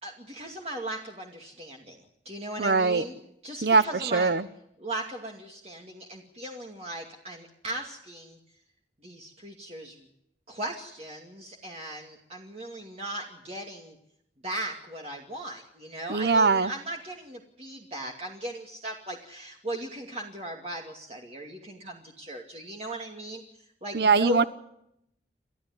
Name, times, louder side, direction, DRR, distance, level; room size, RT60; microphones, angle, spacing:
voice 1, 0.0-2.0 2.2-3.1 3.4-4.3 4.8-8.4 9.0-10.1 10.5-13.9 14.4-23.4 23.8-24.5, right 1 dB, 35° right, 1 dB, 2.4 m, -38 dB
voice 2, 2.6-3.0 3.6-4.5 16.1-16.7 23.9-24.4, right 4 dB, 70° right, 15 dB, 0.9 m, -22 dB
29.5 x 13.5 x 9.7 m, 0.77 s
head